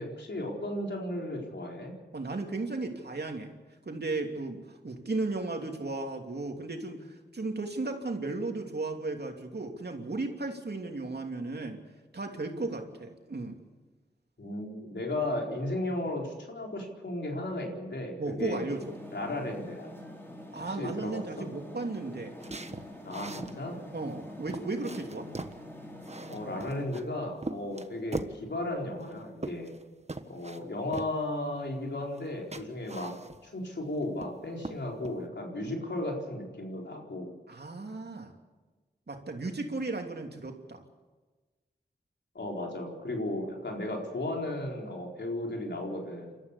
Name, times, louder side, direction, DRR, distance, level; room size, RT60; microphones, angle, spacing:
voice 1, 0.0-1.9 14.4-18.7 19.1-19.9 20.6-21.5 23.0-23.8 26.3-29.7 30.3-37.3 42.3-46.4, left 1 dB, 85° left, 0 dB, 4.4 m, -35 dB
voice 2, 2.1-3.6 3.8-11.8 12.1-13.6 18.2-19.0 20.5-22.3 23.9-25.3 37.5-38.3 39.1-40.8, right 3 dB, 70° right, 3 dB, 2.9 m, -35 dB
sound 1, 18.7-26.9, left 1 dB, 10° left, 4.2 m, -46 dB
sound 2, 22.4-23.6 24.1-24.2 24.5-25.6 26.0-27.0 27.4-28.4 29.0-29.8 30.1-30.6 30.9-31.1 32.1-32.3 32.5-33.6 34.0-34.4 34.6-35.2, right 2 dB, 40° right, 1.3 m, -40 dB
28.5 x 13.5 x 8.4 m, 1.3 s
wide cardioid pair, 50°, 18 cm